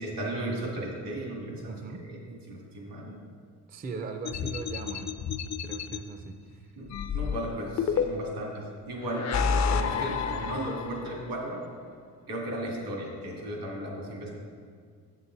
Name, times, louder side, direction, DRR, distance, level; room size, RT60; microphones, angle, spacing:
voice 1, 0.0-1.6 2.0-2.2 2.5-3.2 6.8-6.9 7.1-11.6 12.3-14.3, right 1 dB, 80° right, -2 dB, 2.3 m, -35 dB
voice 2, 1.7-2.0 3.7-5.2 5.6-6.7, right 4 dB, 25° right, 6 dB, 0.4 m, -39 dB
sound 1, 4.3-6.0 6.9-8.4 9.0-11.2, left 6 dB, 45° left, 0.5 m, -29 dB
7.6 x 7.4 x 3.9 m, 2.1 s
cardioid pair, 115°, 41 cm